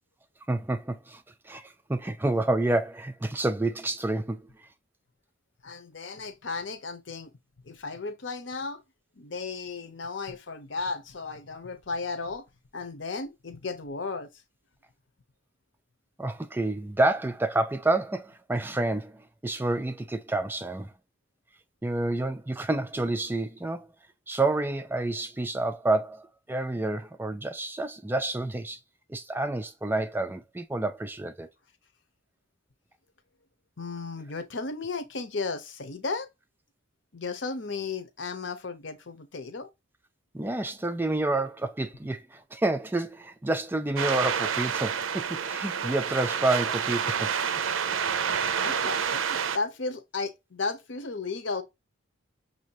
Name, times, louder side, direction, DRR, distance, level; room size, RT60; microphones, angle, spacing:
voice 1, 0.5-4.5 16.2-20.9 21.8-23.9 24.3-28.8 29.1-31.5 40.3-47.3, right 2 dB, 10° right, 0.3 m, -29 dB
voice 2, 5.6-7.3 7.7-8.8 9.2-12.4 12.7-14.3 33.8-36.3 37.1-39.7 48.6-51.6, left 4 dB, 65° left, 0.9 m, -34 dB
sound 1, 44.0-49.6, right 7 dB, 85° right, 0.5 m, -28 dB
6.2 x 2.8 x 2.8 m
head